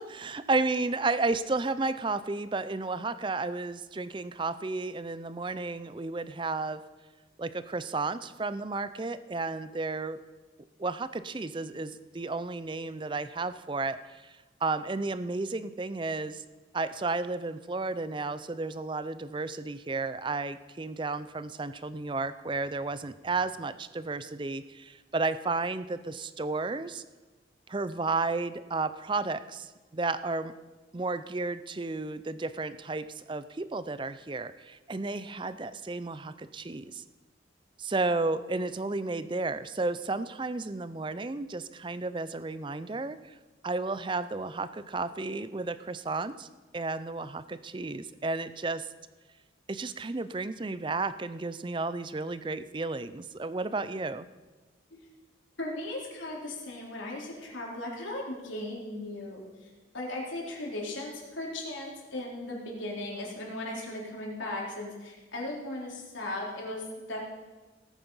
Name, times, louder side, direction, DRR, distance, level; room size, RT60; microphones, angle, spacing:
voice 1, 0.0-6.8 7.4-10.2 10.8-16.4 16.7-27.0 27.7-30.5 30.9-37.0 37.8-43.4 43.6-46.5 46.7-48.9 49.7-54.3, right 3 dB, 25° right, 14 dB, 0.5 m, -32 dB
voice 2, 55.6-67.3, left 1 dB, 85° left, -3 dB, 3.7 m, -37 dB
18.0 x 9.0 x 5.6 m, 1.2 s
head